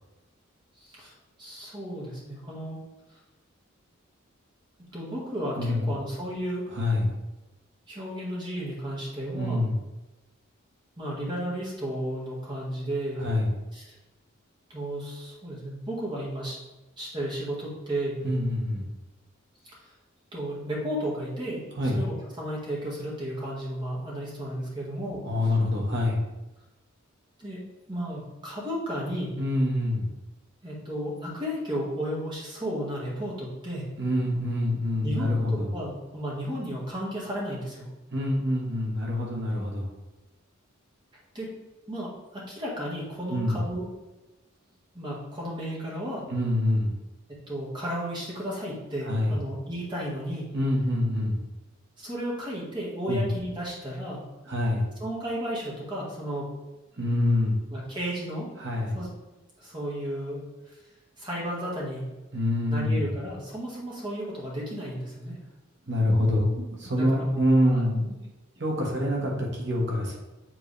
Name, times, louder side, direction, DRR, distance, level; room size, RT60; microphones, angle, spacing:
voice 1, 0.8-1.1 1.4-2.8 4.9-6.7 7.9-9.7 11.0-13.3 13.7-13.9 14.7-16.6 17.0-18.2 19.6-19.9 20.3-25.6 27.4-27.6 27.9-29.4 30.6-33.9 35.0-37.9 41.3-41.5 41.9-43.9 44.9-46.3 47.3-50.5 52.0-54.3 55.0-56.6 57.7-58.5 58.9-59.1 59.6-60.5 61.2-62.1 62.7-65.4 67.0-67.4 67.7-67.8, equal, 20° right, -5 dB, 1.7 m, -33 dB
voice 2, 6.7-7.1 9.3-9.8 13.2-13.4 18.2-18.8 21.8-22.0 25.2-26.2 29.4-30.1 34.0-35.7 38.1-39.9 43.3-43.5 46.3-47.0 49.1-49.3 50.5-51.4 53.1-53.2 54.5-54.9 57.0-57.6 58.6-59.0 62.3-63.1 65.9-68.2 68.6-70.2, left 1 dB, 55° right, -2 dB, 1.5 m, -25 dB
7.6 x 3.7 x 3.3 m, 1.1 s
head